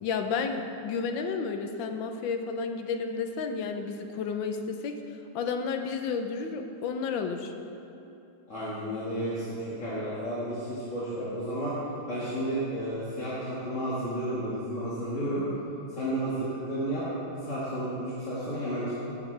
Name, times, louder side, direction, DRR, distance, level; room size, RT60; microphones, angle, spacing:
voice 1, 0.0-4.9 5.3-7.5, left 5 dB, 85° left, 5 dB, 1.4 m, -31 dB
voice 2, 8.5-11.8 12.1-15.5 15.9-18.9, right 1 dB, 40° left, -10 dB, 2.0 m, -32 dB
15.5 x 7.1 x 3.3 m, 2.9 s
omnidirectional pair, 2.0 m